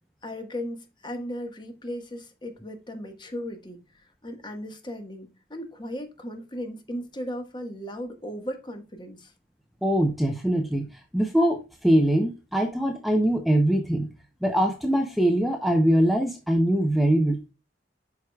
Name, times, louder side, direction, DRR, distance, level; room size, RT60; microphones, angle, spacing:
voice 1, 0.2-9.3, equal, 25° left, 1.4 m, -36 dB
voice 2, 9.8-14.1 14.4-17.5, right 1 dB, ahead, 0.6 m, -23 dB
11.5 x 4.8 x 2.3 m
head